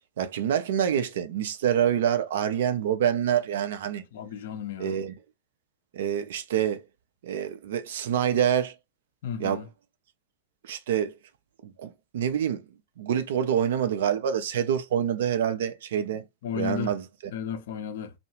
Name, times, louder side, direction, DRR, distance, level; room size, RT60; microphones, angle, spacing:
voice 1, 0.2-4.0 4.8-5.1 5.9-6.8 7.2-8.7 9.4-9.6 10.6-11.1 11.6-12.6 13.0-16.2 16.5-17.0, right 9 dB, 60° right, 0.4 m, -26 dB
voice 2, 4.1-5.0 9.2-9.7 16.4-16.9 17.3-18.1, left 8 dB, 55° left, 0.5 m, -33 dB
2.2 x 2.0 x 3.0 m
figure-of-eight pair, 90°, 0 cm